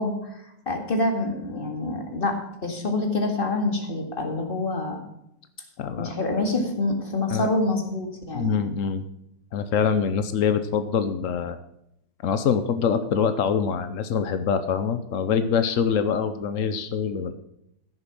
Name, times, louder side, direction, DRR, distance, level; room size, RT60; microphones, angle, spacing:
voice 1, 0.0-5.0 6.0-8.6, left 2 dB, 25° left, 3 dB, 2.0 m, -26 dB
voice 2, 5.8-6.1 7.3-7.5 8.3-9.0 9.5-11.6 12.2-17.3, left 7 dB, 80° left, 9 dB, 0.7 m, -24 dB
15.0 x 6.9 x 6.0 m, 0.79 s
omnidirectional pair, 2.3 m